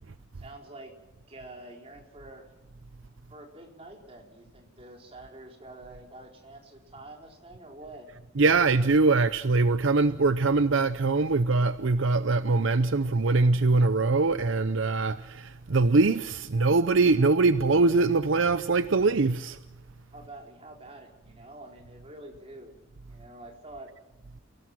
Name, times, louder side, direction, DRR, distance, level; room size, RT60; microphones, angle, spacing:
voice 1, 0.4-1.0 1.3-2.5 3.3-8.1 20.1-22.7 23.1-23.9, right 2 dB, 30° right, 4.2 m, -47 dB
voice 2, 8.4-19.6, right 3 dB, 65° right, 0.7 m, -23 dB
29.5 x 17.5 x 6.0 m
head